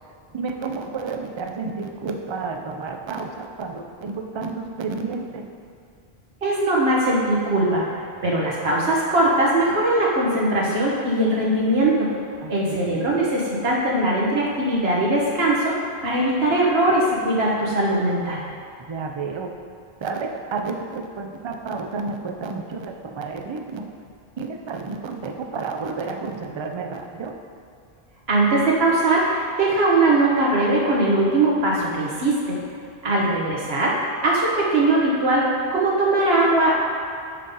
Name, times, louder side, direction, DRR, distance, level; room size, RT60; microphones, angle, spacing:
voice 1, 0.3-5.4 6.7-6.8 12.4-12.8 18.9-19.5 20.0-23.8 24.4-27.4 33.1-33.3, right 4 dB, 45° right, 4 dB, 0.4 m, -31 dB
voice 2, 6.4-7.8 8.2-12.1 12.5-18.4 28.3-32.6 33.0-35.4 35.7-36.8, right 2 dB, 75° right, -4 dB, 1.5 m, -20 dB
6.4 x 3.8 x 5.4 m, 2.4 s
omnidirectional pair, 1.1 m